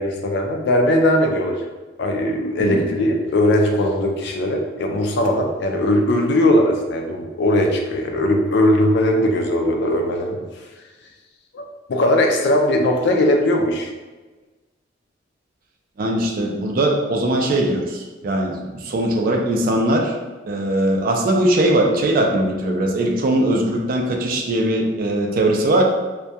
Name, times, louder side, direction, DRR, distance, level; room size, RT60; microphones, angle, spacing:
voice 1, 0.0-1.6 2.0-10.4 11.5-13.9, left 1 dB, 65° left, 2 dB, 0.4 m, -19 dB
voice 2, 16.0-20.1 20.5-25.8, right 1 dB, 50° right, 1 dB, 0.4 m, -20 dB
2.2 x 2.2 x 2.7 m, 1.3 s
head